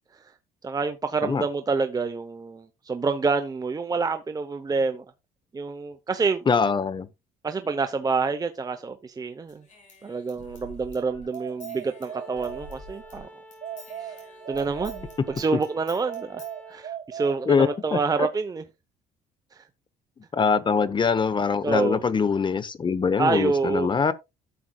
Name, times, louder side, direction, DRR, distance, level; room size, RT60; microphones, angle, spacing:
voice 1, 0.6-5.0 5.5-6.5 7.4-9.6 10.0-13.3 14.5-18.6 19.5-19.6 20.8-20.9 21.6-22.0 23.2-23.9, right 4 dB, 20° right, 0.8 m, -27 dB
voice 2, 6.5-7.1 15.5-15.6 17.4-18.0 20.3-24.1, left 5 dB, 30° left, 0.9 m, -23 dB
Human voice / Scissors, 9.5-13.2 13.5-16.5, left 1 dB, 45° left, 6.0 m, -48 dB
sound 1, 11.3-13.1 13.6-15.5 16.1-17.9, right 9 dB, 40° right, 1.5 m, -39 dB
Bowed string instrument, 11.9-16.9, equal, 10° left, 2.1 m, -49 dB
12.5 x 7.7 x 2.3 m
cardioid pair, 110°, 17 cm